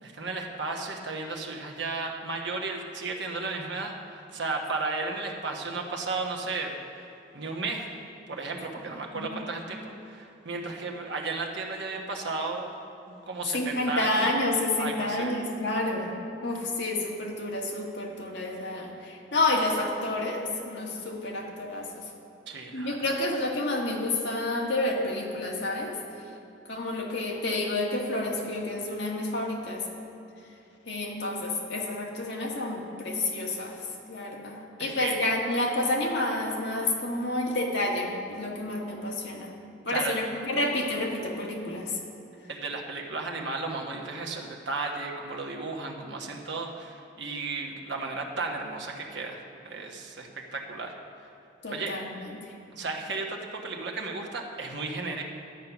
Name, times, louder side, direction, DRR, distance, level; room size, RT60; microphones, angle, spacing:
voice 1, 0.0-6.7 7.3-7.9 8.3-12.7 13.1-14.3 14.8-15.3 22.5-23.0 34.8-35.1 39.9-40.2 42.5-49.4 49.6-50.9 51.7-51.9 52.7-55.2, right 3 dB, 55° right, 1 dB, 1.2 m, -34 dB
voice 2, 13.5-16.1 16.4-22.0 22.7-26.0 26.7-29.8 30.9-33.8 34.1-39.5 39.8-41.9 51.6-52.1, left 2 dB, 55° left, -1 dB, 1.6 m, -29 dB
11.5 x 8.5 x 5.9 m, 2.8 s
head